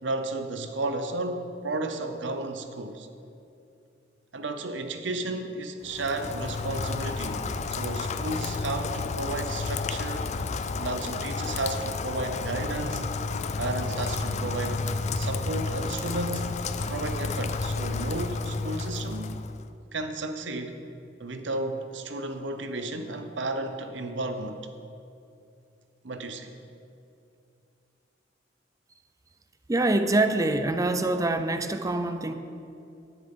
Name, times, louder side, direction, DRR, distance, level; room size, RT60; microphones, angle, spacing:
voice 1, 0.0-3.1 4.3-10.3 10.8-13.0 13.6-14.8 15.2-19.4 19.9-20.8 21.2-24.6 26.0-26.5, right 2 dB, 70° right, 8 dB, 0.8 m, -33 dB
Rain, 5.9-19.7, left 4 dB, 40° left, 0.4 m, -31 dB
voice 2, 29.7-32.3, right 2 dB, 20° right, 9 dB, 0.5 m, -25 dB
11.5 x 10.5 x 3.8 m, 2.6 s
head